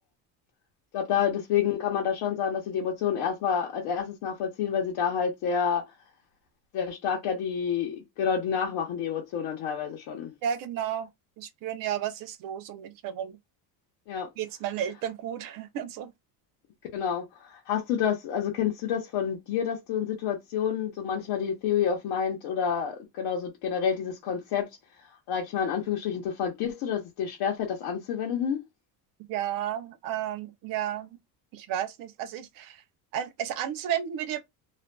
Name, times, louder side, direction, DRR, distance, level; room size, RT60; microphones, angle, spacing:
voice 1, 0.9-5.8 6.7-10.3 14.1-14.3 16.9-24.7 25.3-28.6, left 8 dB, 60° left, 0.9 m, -29 dB
voice 2, 10.4-11.1 11.4-13.4 14.4-16.1 29.3-31.2 31.5-32.8 33.1-34.4, right 10 dB, 50° right, 0.5 m, -32 dB
2.5 x 2.4 x 2.2 m
cardioid pair, 130°, 43 cm